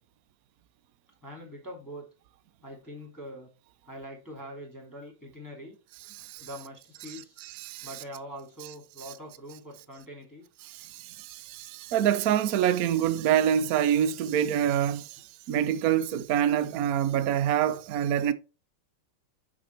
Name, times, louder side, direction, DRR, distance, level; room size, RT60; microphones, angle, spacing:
voice 1, 1.2-2.1 2.6-3.5 3.8-5.8 6.4-7.4 7.8-10.5, equal, 10° left, 2.5 m, -43 dB
voice 2, 10.7-18.3, right 10 dB, 70° right, 0.8 m, -26 dB
6.9 x 6.0 x 4.4 m
omnidirectional pair, 2.4 m